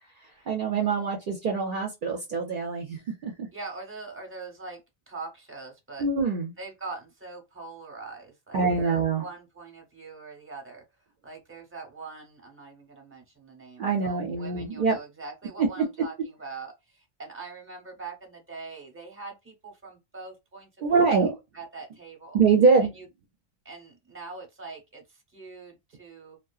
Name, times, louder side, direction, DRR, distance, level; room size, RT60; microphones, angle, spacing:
voice 1, 0.5-3.5 6.0-6.5 8.5-9.2 13.8-15.0 15.6-15.8 20.8-21.3 22.3-22.9, right 5 dB, 60° right, 0.6 m, -24 dB
voice 2, 3.5-4.8 5.1-6.0 6.6-10.8 11.2-20.7 21.0-22.4 22.8-23.0 23.6-26.4, right 3 dB, 15° right, 0.8 m, -43 dB
2.7 x 2.2 x 2.3 m
omnidirectional pair, 1.0 m